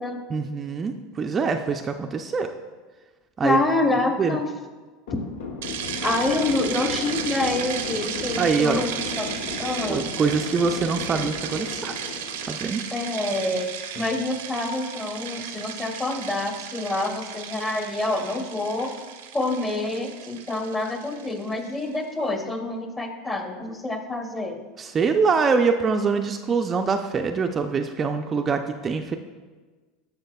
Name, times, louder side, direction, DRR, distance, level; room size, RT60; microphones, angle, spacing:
voice 1, 0.3-2.5 3.4-3.6 4.2-4.4 8.4-8.8 9.9-11.9 12.5-12.8 24.8-29.2, right 5 dB, 30° right, 5 dB, 0.4 m, -24 dB
voice 2, 3.4-4.5 6.0-8.9 9.1-9.3 9.6-10.1 12.9-13.7 13.9-18.9 19.3-24.6, left 2 dB, 20° left, 4 dB, 1.0 m, -27 dB
sound 1, 5.1-13.4, left 4 dB, 80° left, 0.8 m, -35 dB
sound 2, 5.6-21.9, right 8 dB, 85° right, 0.7 m, -35 dB
10.5 x 6.8 x 2.3 m, 1.4 s
supercardioid pair, 105°, 0 cm